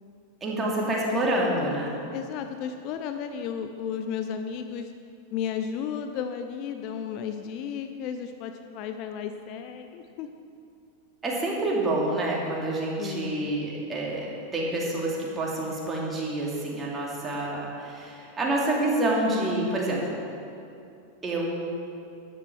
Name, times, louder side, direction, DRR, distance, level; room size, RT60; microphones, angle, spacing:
voice 1, 0.4-2.0 11.2-20.1 21.2-21.6, right 1 dB, 20° right, -3 dB, 2.7 m, -27 dB
voice 2, 2.1-4.9 5.3-10.3 13.0-13.5, left 8 dB, 40° left, 7 dB, 0.6 m, -34 dB
12.5 x 10.5 x 4.7 m, 2.6 s
figure-of-eight pair, 90°, 0 cm